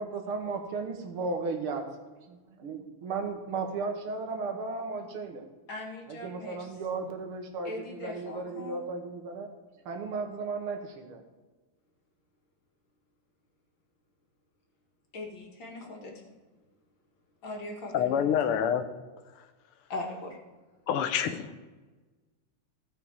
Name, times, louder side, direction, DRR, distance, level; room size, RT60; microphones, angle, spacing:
voice 1, 0.0-1.8 2.3-5.4 6.1-9.5 9.9-11.2, right 4 dB, 80° right, 4 dB, 2.1 m, -35 dB
voice 2, 5.7-6.7 7.7-8.9 15.1-16.3 17.4-18.5 19.9-20.4, left 2 dB, 60° left, 0 dB, 2.4 m, -40 dB
voice 3, 17.9-18.8 20.9-21.6, left 9 dB, 85° left, 9 dB, 1.8 m, -27 dB
16.0 x 5.7 x 4.7 m, 1.3 s
omnidirectional pair, 2.4 m